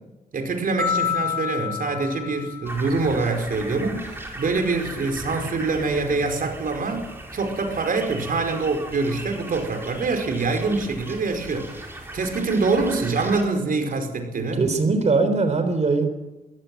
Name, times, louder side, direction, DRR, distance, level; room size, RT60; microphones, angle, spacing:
voice 1, 0.3-14.6, right 3 dB, 65° right, 5 dB, 4.9 m, -25 dB
sound 1, 0.8-3.1, left 8 dB, 25° left, 7.6 m, -28 dB
sound 2, 2.7-13.4, right 1 dB, 15° right, 5.0 m, -38 dB
voice 2, 14.5-16.1, right 3 dB, 45° right, 9 dB, 3.7 m, -21 dB
23.5 x 16.0 x 9.2 m, 1.0 s
wide cardioid pair, 130°, 16 cm